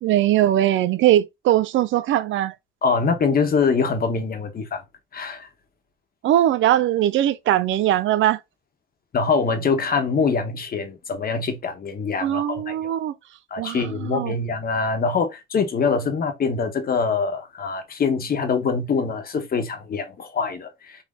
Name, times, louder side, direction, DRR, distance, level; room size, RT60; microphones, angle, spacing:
voice 1, 0.0-2.5 6.2-8.4 12.2-13.1 13.6-14.3, right 12 dB, 75° right, 0.5 m, -20 dB
voice 2, 2.8-4.8 5.1-5.5 9.1-12.9 13.5-21.0, left 5 dB, 50° left, 1.1 m, -24 dB
4.0 x 2.7 x 3.6 m
cardioid pair, 90°, 20 cm